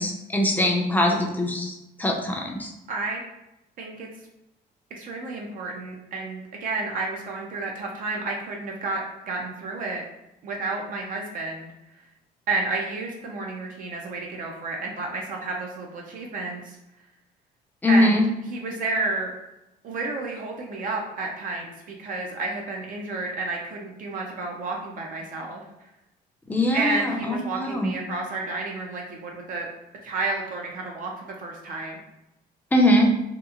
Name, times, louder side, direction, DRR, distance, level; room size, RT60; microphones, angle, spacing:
voice 1, 0.0-1.7 2.0-2.7 17.8-18.2 26.5-27.9 32.7-33.1, left 1 dB, 10° left, 1 dB, 0.5 m, -22 dB
voice 2, 2.9-3.2 3.8-4.1 4.9-10.0 10.4-11.7 12.5-16.8 17.9-19.3 19.8-25.6 26.7-29.7 30.0-32.0, right 3 dB, 55° right, 0 dB, 0.5 m, -31 dB
2.9 x 2.3 x 2.4 m, 0.92 s
cardioid pair, 110°, 17 cm